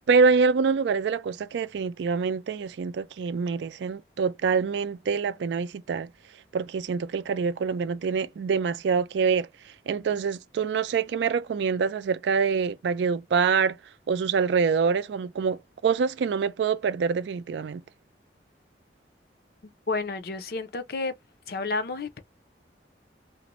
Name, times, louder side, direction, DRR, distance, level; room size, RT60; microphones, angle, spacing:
voice 1, 0.1-6.1 6.5-9.5 9.9-13.8 14.1-17.8, right 5 dB, 70° right, 0.3 m, -25 dB
voice 2, 19.6-21.1 21.5-22.2, left 3 dB, 55° left, 0.5 m, -31 dB
2.5 x 2.0 x 2.9 m
head